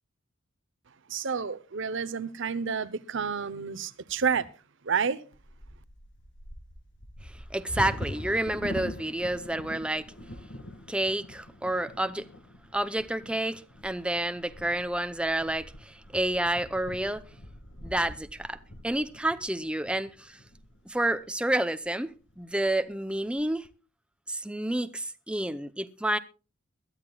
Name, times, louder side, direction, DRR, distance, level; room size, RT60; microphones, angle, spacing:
voice 1, 1.1-4.5 4.8-5.2, right 6 dB, 65° right, 0.8 m, -30 dB
Bird vocalization bird call bird song / Wind / Thunder, 5.3-21.2 21.9-22.0 22.3-22.7 23.1-23.7, left 1 dB, 65° left, 2.1 m, -44 dB
voice 2, 7.2-10.1 10.9-12.2 12.7-17.2 17.8-18.6 18.8-20.4 20.9-23.7 24.3-26.2, right 1 dB, 5° right, 0.6 m, -29 dB
22.0 x 12.5 x 2.3 m
head